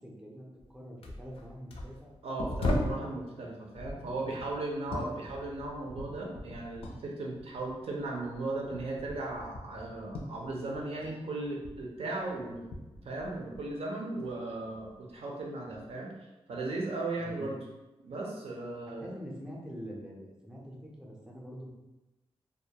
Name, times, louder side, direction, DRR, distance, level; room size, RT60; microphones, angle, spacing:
voice 1, 0.0-2.1 12.4-12.5 17.2-17.5 18.9-21.7, equal, 5° right, -3 dB, 0.4 m, -45 dB
sound 1, 0.6-0.7 1.0-3.1 3.7-7.1 7.4-11.2 11.4-13.8 14.2-14.9 15.7-15.9, left 1 dB, 60° left, 0.4 m, -39 dB
voice 2, 2.2-12.7 13.0-16.1 16.5-17.6 18.0-19.1, right 2 dB, 70° right, -1 dB, 0.5 m, -37 dB
2.3 x 2.1 x 2.7 m, 1.0 s
wide cardioid pair, 160°, 11 cm